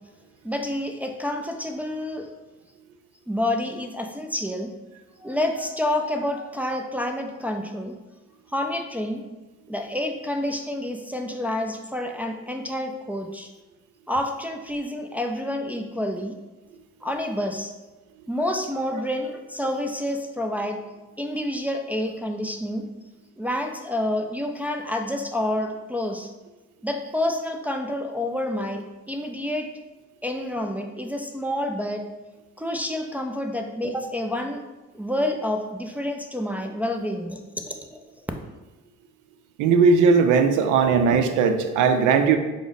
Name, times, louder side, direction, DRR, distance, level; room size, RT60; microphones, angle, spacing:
voice 1, 0.4-2.3 3.3-4.7 5.2-7.9 8.5-9.2 9.7-13.5 14.1-16.4 17.0-17.7 18.3-20.8 21.2-22.8 23.4-26.3 26.8-28.8 29.1-29.7 30.2-32.0 32.6-34.6 34.9-37.4 37.7-38.0, left 1 dB, 5° right, 3 dB, 0.3 m, -28 dB
voice 2, 39.6-42.4, right 5 dB, 90° right, 7 dB, 0.5 m, -18 dB
4.8 x 2.0 x 3.9 m, 1.1 s
cardioid pair, 90°, 30 cm